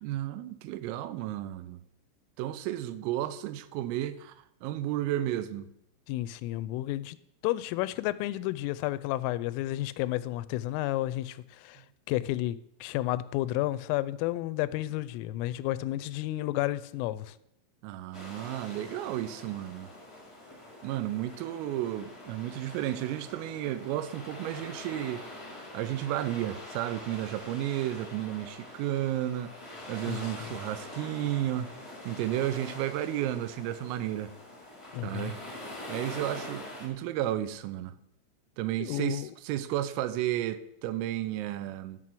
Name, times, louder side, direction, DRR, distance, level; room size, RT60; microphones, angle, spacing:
voice 1, 0.0-1.8 2.4-5.7 17.8-19.9 20.8-25.3 25.7-29.6 29.9-31.7 32.1-34.3 35.0-35.4 35.9-38.0 38.6-42.0, right 13 dB, 85° right, 3.4 m, -33 dB
voice 2, 6.1-7.2 7.4-11.8 12.1-17.4 30.1-30.5 34.9-35.3 38.8-39.3, left 16 dB, 85° left, 3.1 m, -31 dB
sound 1, 18.1-36.9, left 1 dB, 15° left, 1.2 m, -45 dB
11.0 x 6.2 x 7.5 m
omnidirectional pair, 5.8 m